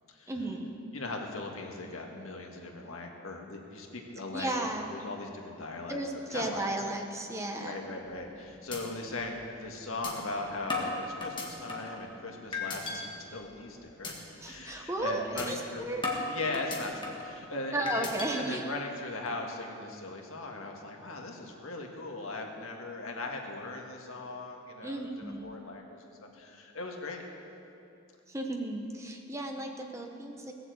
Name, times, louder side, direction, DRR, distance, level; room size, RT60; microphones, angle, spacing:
voice 1, 0.3-0.8 4.3-4.9 5.9-7.8 14.4-16.0 17.7-18.6 24.8-25.5 28.3-30.5, right 1 dB, 15° right, 2 dB, 0.9 m, -34 dB
voice 2, 0.9-6.0 6.3-6.9 7.5-14.1 14.4-15.9 16.3-25.1 25.4-27.2, left 2 dB, 85° left, 1 dB, 1.8 m, -39 dB
sound 1, 8.0-8.3 8.7-8.8 9.2-9.3 10.0-10.1 10.7-12.0 12.5-13.0 13.4-13.6 14.0-14.1 14.5-14.7 15.4-15.5 16.0-17.3 17.9-18.3, left 4 dB, 20° left, 1.7 m, -35 dB
17.5 x 7.8 x 7.8 m, 2.7 s
head